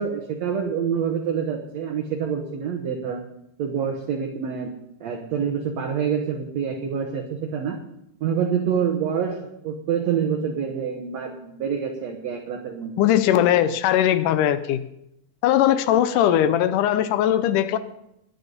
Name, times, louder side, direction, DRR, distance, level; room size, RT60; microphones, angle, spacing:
voice 1, 0.0-3.2 3.6-4.7 5.0-7.8 8.2-13.0, right 7 dB, 65° right, 3 dB, 1.7 m, -26 dB
voice 2, 13.0-14.8 15.4-17.8, left 11 dB, 85° left, 12 dB, 1.8 m, -19 dB
21.0 x 8.0 x 5.4 m, 0.81 s
omnidirectional pair, 4.5 m